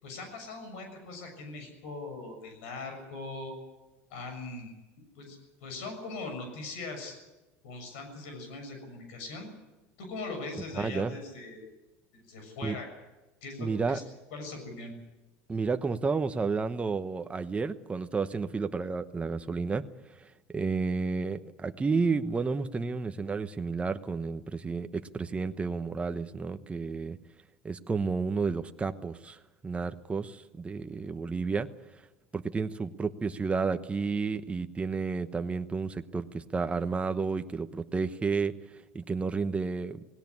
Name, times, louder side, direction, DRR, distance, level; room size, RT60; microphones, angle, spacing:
voice 1, 0.0-3.6 4.1-4.7 5.1-7.1 7.6-9.5 10.0-11.7 12.1-12.9 13.4-14.0 14.3-14.9, left 3 dB, 75° left, 6 dB, 6.8 m, -40 dB
voice 2, 10.7-11.1 12.6-12.8 13.6-14.0 15.5-27.2 27.6-32.1 32.3-40.1, right 4 dB, 20° right, 9 dB, 1.0 m, -31 dB
18.5 x 17.5 x 9.7 m, 1.1 s
hypercardioid pair, 95°, 7 cm